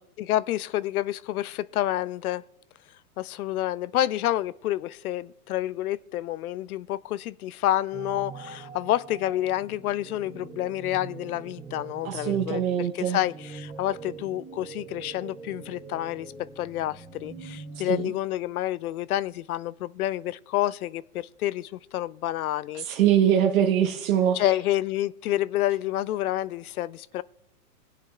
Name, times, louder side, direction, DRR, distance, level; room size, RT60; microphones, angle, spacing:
voice 1, 0.2-2.4 3.2-22.9 24.3-27.2, left 14 dB, 75° left, 0.5 m, -29 dB
sound 1, 7.9-18.1, right 5 dB, 10° right, 0.5 m, -43 dB
voice 2, 12.0-13.2 17.9-18.1 22.8-24.4, right 9 dB, 65° right, 1.2 m, -23 dB
18.5 x 7.5 x 2.4 m
hypercardioid pair, 130°, 44 cm